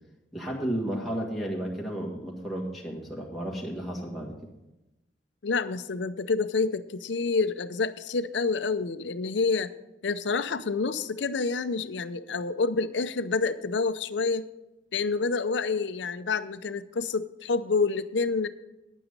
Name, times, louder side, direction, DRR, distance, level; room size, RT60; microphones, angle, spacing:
voice 1, 0.3-4.4, right 1 dB, ahead, -4 dB, 1.6 m, -33 dB
voice 2, 5.4-9.7 10.0-14.5 14.9-18.5, left 4 dB, 70° left, 11 dB, 0.6 m, -28 dB
9.9 x 8.9 x 5.3 m, 0.97 s
head